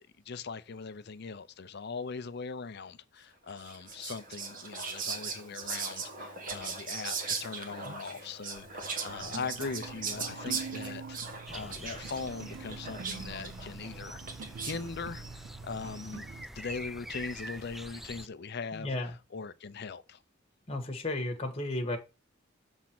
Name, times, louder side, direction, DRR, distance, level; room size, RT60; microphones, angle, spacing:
voice 1, 0.3-11.2 11.5-14.2 14.6-16.3 16.5-18.9 19.3-20.2, left 5 dB, 55° left, 0.6 m, -40 dB
Whispering, 3.6-14.9, right 5 dB, 45° right, 1.5 m, -39 dB
sound 1, 9.2-16.4, right 5 dB, 80° right, 0.4 m, -45 dB
sound 2, 11.5-18.3, equal, ahead, 0.3 m, -46 dB
voice 2, 18.7-19.1 20.7-22.0, left 2 dB, 30° left, 1.3 m, -33 dB
7.2 x 3.7 x 5.9 m
head